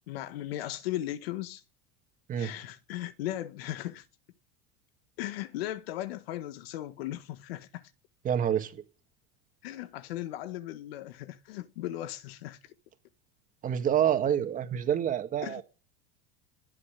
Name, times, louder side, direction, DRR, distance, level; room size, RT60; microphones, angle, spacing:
voice 1, 0.1-1.6 2.4-4.0 5.2-7.9 9.6-12.6 15.4-15.6, left 14 dB, 90° left, 1.5 m, -37 dB
voice 2, 8.2-8.8 13.6-15.6, right 9 dB, 25° right, 1.9 m, -27 dB
19.5 x 7.2 x 10.0 m
supercardioid pair, 155°, 29 cm